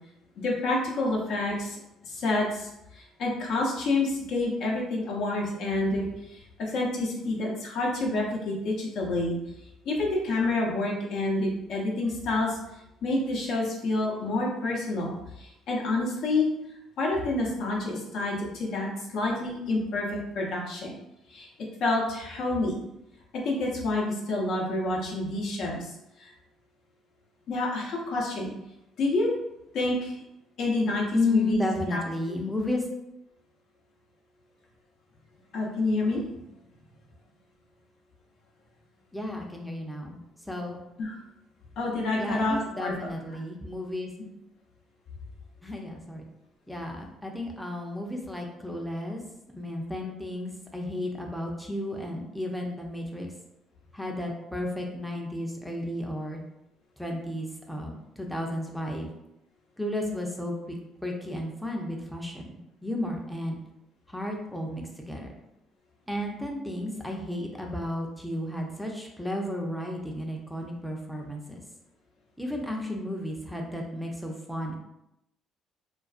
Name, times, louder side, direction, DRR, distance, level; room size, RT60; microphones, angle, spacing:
voice 1, 0.4-9.4 9.8-12.6 13.0-16.5 17.0-20.9 21.3-21.5 21.8-22.8 23.4-25.9 26.2-26.3 27.5-28.5 29.0-29.3 29.7-30.1 30.6-31.6 31.9-32.0 35.5-36.2 41.0-41.2 41.8-43.1, left 2 dB, 70° left, -2 dB, 0.6 m, -28 dB
voice 2, 31.1-32.8 39.1-40.8 42.2-44.1 45.6-46.3 46.7-49.2 49.5-53.3 53.9-56.4 57.0-59.1 59.8-60.8 61.0-63.6 64.1-65.3 66.1-71.6 72.4-74.7, left 1 dB, ahead, 0 dB, 0.5 m, -33 dB
2.4 x 2.3 x 2.4 m, 0.85 s
supercardioid pair, 80°, 0 cm